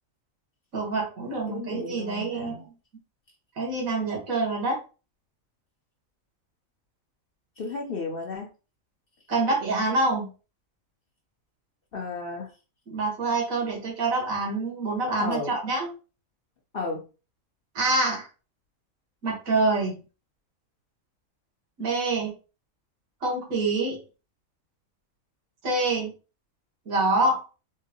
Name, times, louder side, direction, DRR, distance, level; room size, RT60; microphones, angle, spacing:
voice 1, 0.7-2.7 3.6-4.8 9.3-10.3 12.9-15.9 17.7-18.3 19.2-20.0 21.8-22.3 23.2-24.0 25.6-26.1 26.9-27.4, right 2 dB, 80° right, 0 dB, 1.6 m, -26 dB
voice 2, 1.5-2.7 7.6-8.5 11.9-12.5 15.2-15.5 16.7-17.1, left 3 dB, 55° left, 1 dB, 0.7 m, -33 dB
3.8 x 2.5 x 2.7 m, 0.33 s
omnidirectional pair, 1.4 m